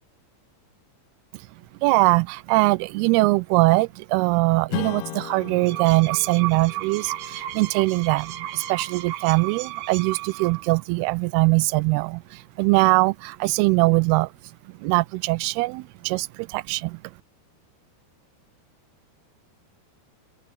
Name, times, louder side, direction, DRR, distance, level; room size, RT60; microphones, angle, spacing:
voice 1, 1.8-14.3 14.7-17.0, right 24 dB, 85° right, 2.5 m, -22 dB
Strum, 4.7-9.6, left 19 dB, 85° left, 2.6 m, -38 dB
sound 1, 5.4-10.8, right 13 dB, 65° right, 2.0 m, -34 dB
open air
omnidirectional pair, 4.6 m